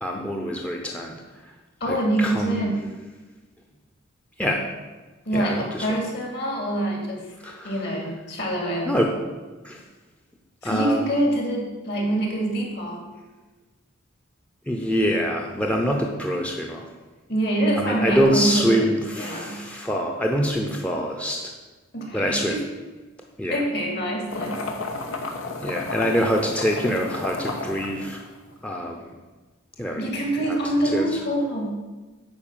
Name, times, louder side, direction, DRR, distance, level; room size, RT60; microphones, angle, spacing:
voice 1, 0.0-1.2 1.8-2.7 4.4-4.6 5.3-5.9 7.4-7.8 8.9-9.1 9.6-9.8 10.6-11.0 14.7-16.9 17.8-21.5 22.1-22.6 23.4-23.6 25.6-28.2 28.6-29.1 29.8-30.1 30.5-30.6 30.9-31.1, equal, 5° left, 0 dB, 0.7 m, -25 dB
voice 2, 1.8-2.9 5.3-7.2 7.6-8.9 10.6-13.0 17.3-18.8 19.2-19.6 21.9-22.6 23.5-24.6 29.9-31.8, right 1 dB, 55° left, 0 dB, 2.7 m, -25 dB
sound 1, 24.3-28.7, left 3 dB, 85° left, 1.2 m, -32 dB
9.6 x 4.7 x 7.4 m, 1.2 s
head